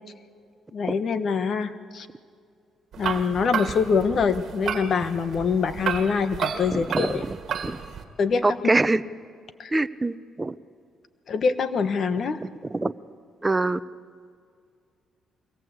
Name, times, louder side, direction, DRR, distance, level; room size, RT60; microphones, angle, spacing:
voice 1, 0.7-2.1 3.0-7.2 8.2-8.4 9.6-9.7 11.3-12.4, left 5 dB, 55° left, 11 dB, 1.3 m, -24 dB
sound 1, 2.9-8.0, right 7 dB, 65° right, 1.7 m, -32 dB
voice 2, 6.7-7.4 7.6-7.8 8.4-9.0 9.7-10.5 12.4-12.9 13.4-13.8, right 2 dB, 20° right, 13 dB, 0.7 m, -24 dB
23.5 x 18.0 x 8.1 m, 2.2 s
cardioid pair, 90°, 0 cm